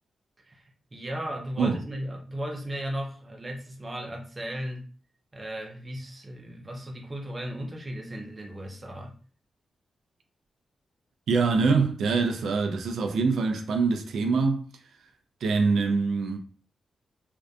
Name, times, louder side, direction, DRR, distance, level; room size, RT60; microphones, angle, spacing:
voice 1, 0.4-4.8 5.3-9.1, equal, 20° right, 0.4 m, -36 dB
voice 2, 11.3-14.7 15.4-16.4, right 4 dB, 85° right, 0.4 m, -24 dB
2.6 x 2.2 x 2.3 m
wide cardioid pair, 170°, 0 cm